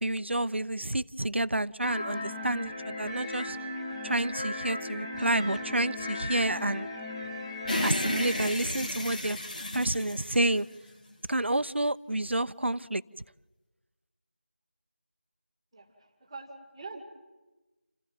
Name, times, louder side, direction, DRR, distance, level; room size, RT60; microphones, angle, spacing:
voice 1, 0.0-3.6 4.0-6.9 7.8-9.4 9.7-10.7 11.3-13.0, right 1 dB, 70° right, 14 dB, 0.9 m, -29 dB
sound 1, 1.8-8.5, left 2 dB, 20° left, 2.6 m, -37 dB
voice 2, 2.2-2.5 15.7-17.0, right 3 dB, 5° right, 3 dB, 2.4 m, -45 dB
sound 2, 7.7-11.2, left 1 dB, 40° left, 2.4 m, -33 dB
28.5 x 15.5 x 9.3 m, 1.1 s
figure-of-eight pair, 170°, 6 cm